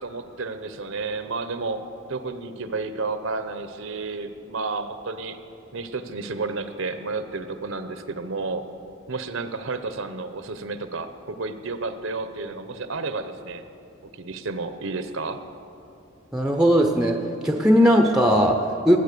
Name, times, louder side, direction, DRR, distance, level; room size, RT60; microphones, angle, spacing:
voice 1, 0.0-1.8 2.1-5.4 5.7-8.6 9.1-13.6 14.0-15.4, right 3 dB, 65° right, 10 dB, 0.9 m, -31 dB
voice 2, 16.3-19.0, equal, 5° right, 4 dB, 0.7 m, -19 dB
19.5 x 8.7 x 6.8 m, 2.6 s
head